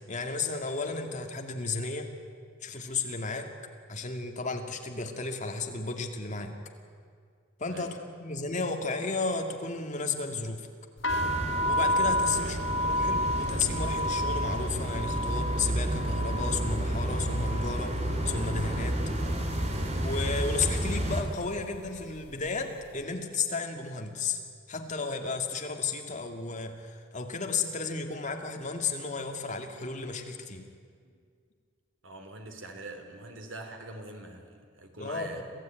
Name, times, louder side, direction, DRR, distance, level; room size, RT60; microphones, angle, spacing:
voice 1, 0.1-2.1 2.6-3.5 3.9-6.5 7.6-7.9 8.2-10.7 11.6-18.0 18.2-19.0 20.0-24.4 24.7-30.6 35.0-35.4, left 4 dB, 40° left, 4 dB, 2.2 m, -33 dB
voice 2, 7.7-8.0 12.3-12.6 31.0-31.2 32.0-35.4, right 2 dB, 85° right, 5 dB, 3.3 m, -44 dB
sound 1, 11.0-18.9 19.2-19.8 20.5-20.8 21.0-22.5, left 1 dB, 70° left, 1.7 m, -32 dB
sound 2, 11.1-21.2, right 1 dB, 35° right, 2.8 m, -31 dB
26.5 x 16.0 x 9.2 m, 2.1 s
head